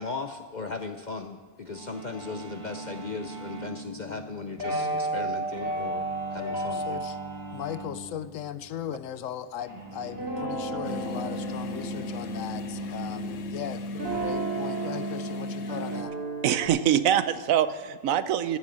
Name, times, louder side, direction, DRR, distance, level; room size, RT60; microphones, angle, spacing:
voice 1, 0.0-7.0, left 4 dB, 50° left, 6 dB, 0.5 m, -37 dB
sound 1, 1.7-16.1, right 3 dB, 20° right, 1.5 m, -44 dB
sound 2, 4.6-7.3 10.0-13.5 13.9-16.7, right 2 dB, 45° right, 3.4 m, -33 dB
voice 2, 6.7-7.2 7.5-16.1, left 10 dB, 70° left, 14 dB, 0.9 m, -38 dB
sound 3, 10.8-16.0, left 2 dB, 90° left, 1.3 m, -35 dB
voice 3, 16.4-18.6, right 10 dB, 75° right, 13 dB, 1.1 m, -24 dB
15.0 x 7.6 x 7.4 m, 1.5 s
omnidirectional pair, 1.5 m